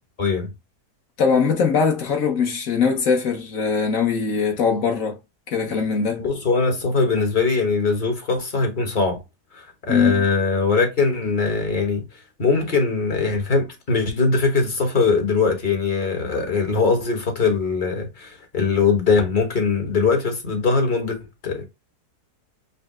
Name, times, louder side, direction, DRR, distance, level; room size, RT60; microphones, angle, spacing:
voice 1, 0.2-0.5 6.2-9.2 9.5-12.0 12.4-21.2 21.4-21.7, left 4 dB, 35° left, 1.0 m, -21 dB
voice 2, 1.2-5.2 5.5-6.2 9.9-10.2, left 5 dB, 60° left, 1.2 m, -21 dB
5.3 x 2.0 x 3.6 m
omnidirectional pair, 1.7 m